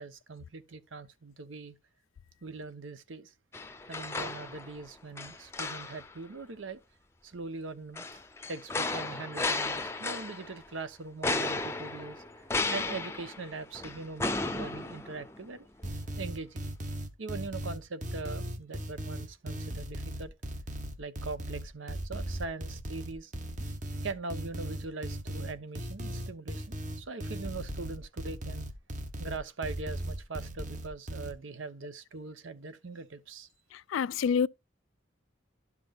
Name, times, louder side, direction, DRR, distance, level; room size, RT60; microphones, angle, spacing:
voice 1, 0.0-1.7 2.4-3.3 3.9-6.8 7.2-8.2 8.5-12.5 12.7-15.7 16.2-16.6 17.2-20.3 21.0-23.3 24.0-28.7 29.2-33.5, right 3 dB, 85° right, 0.9 m, -41 dB
sound 1, 3.5-4.9 5.2-6.1 8.0-10.6 11.2-15.5 15.9-16.0, left 3 dB, 15° left, 0.6 m, -34 dB
sound 2, 15.8-31.3, right 1 dB, 40° right, 1.0 m, -37 dB
voice 2, 33.7-34.5, left 6 dB, 90° left, 0.3 m, -28 dB
12.0 x 6.0 x 2.4 m
head